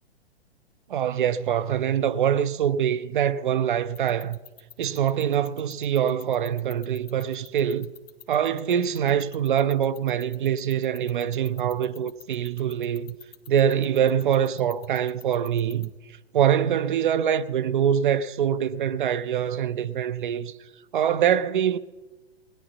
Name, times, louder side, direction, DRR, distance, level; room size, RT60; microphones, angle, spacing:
voice 1, 0.9-4.4 4.8-7.9 8.3-13.2 13.5-15.9 16.3-20.5 20.9-21.8, right 9 dB, 50° right, 0.6 m, -24 dB
sound 1, 3.9-15.9, left 8 dB, 65° left, 1.6 m, -46 dB
19.0 x 10.5 x 4.1 m
figure-of-eight pair, 115°, 32 cm